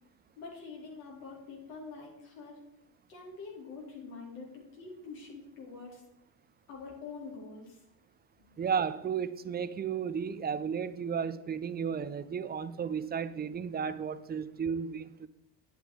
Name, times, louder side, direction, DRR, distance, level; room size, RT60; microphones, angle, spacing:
voice 1, 0.4-2.6 3.1-6.0 6.7-7.8 8.4-8.6, left 4 dB, 90° left, 3.9 m, -46 dB
voice 2, 8.6-15.3, right 7 dB, 20° right, 0.6 m, -33 dB
9.3 x 8.3 x 4.6 m
supercardioid pair, 85°, 46 cm